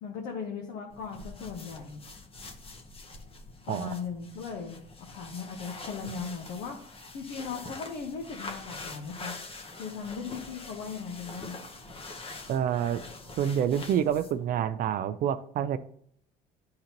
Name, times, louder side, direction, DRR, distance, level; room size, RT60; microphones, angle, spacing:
voice 1, 0.0-2.0 3.7-4.8 5.1-6.8 7.1-9.4 9.8-11.6, left 5 dB, 80° left, 0 dB, 1.1 m, -38 dB
sound 1, 0.9-14.5, left 3 dB, 35° left, 1.0 m, -45 dB
voice 2, 12.5-13.0 13.4-15.8, right 9 dB, 55° right, 12 dB, 0.4 m, -27 dB
11.0 x 3.8 x 2.9 m, 0.66 s
cardioid pair, 110°, 17 cm